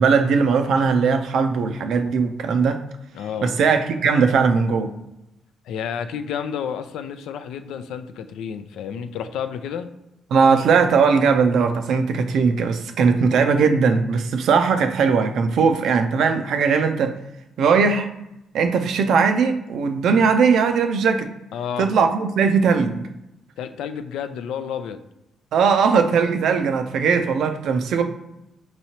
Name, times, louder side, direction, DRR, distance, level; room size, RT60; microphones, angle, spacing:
voice 1, 0.0-2.8 3.4-4.9 10.3-17.1 17.6-18.1 18.5-21.3 21.8-23.1 25.5-28.0, right 5 dB, 75° right, 6 dB, 0.5 m, -19 dB
voice 2, 3.1-3.5 5.6-9.9 21.5-21.9 23.6-25.0, left 8 dB, 85° left, 9 dB, 0.3 m, -30 dB
5.5 x 3.0 x 2.8 m, 0.87 s
cardioid pair, 90°, 0 cm